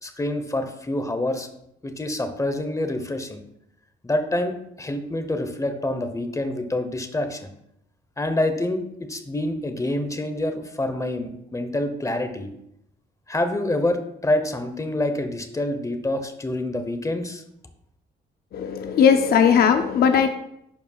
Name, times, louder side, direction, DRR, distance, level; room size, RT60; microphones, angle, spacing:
voice 1, 0.0-1.5 1.8-3.4 4.0-7.5 8.2-12.5 13.3-17.4, left 1 dB, 15° left, 7 dB, 0.9 m, -27 dB
voice 2, 18.5-20.3, left 7 dB, 50° left, 6 dB, 0.5 m, -18 dB
11.0 x 4.6 x 2.4 m, 0.77 s
cardioid pair, 90°, 20 cm